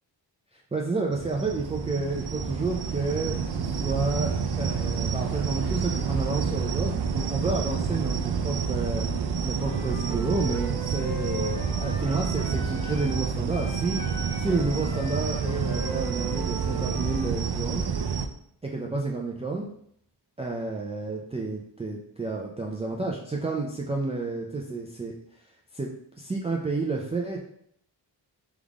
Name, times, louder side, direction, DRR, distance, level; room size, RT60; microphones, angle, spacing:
voice 1, 0.5-9.1 9.4-14.0 14.4-17.9 18.6-19.7 20.4-25.1 25.7-25.9 26.2-27.4, right 3 dB, 15° right, -2 dB, 0.5 m, -30 dB
sound 1, 1.1-18.3, right 6 dB, 60° right, 0.6 m, -29 dB
Wind instrument woodwind instrument, 9.6-13.2 13.5-17.4, equal, 45° left, 1.4 m, -39 dB
3.6 x 3.6 x 3.5 m, 0.69 s
cardioid pair, 85°, 44 cm